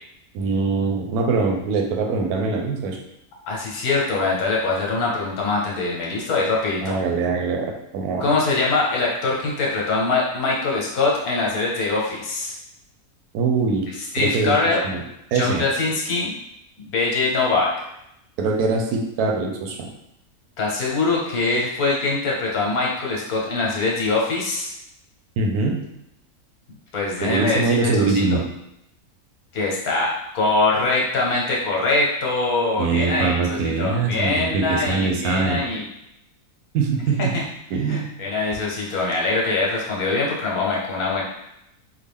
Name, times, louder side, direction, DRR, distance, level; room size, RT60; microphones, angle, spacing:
voice 1, 0.3-3.0 6.8-8.3 13.3-13.9 14.2-14.6 14.8-15.0 15.3-15.6 18.4-19.9 25.4-25.8 27.2-28.4 32.8-35.6 36.7-37.3 37.7-38.0, right 4 dB, 85° right, 2 dB, 1.1 m, -22 dB
voice 2, 3.5-6.9 8.2-12.5 14.1-14.8 15.3-16.3 16.8-17.7 20.6-24.7 26.9-28.1 29.5-35.8 37.3-37.4 37.9-41.2, left 3 dB, 75° left, -3 dB, 1.4 m, -23 dB
3.6 x 2.2 x 3.4 m, 0.81 s
omnidirectional pair, 1.6 m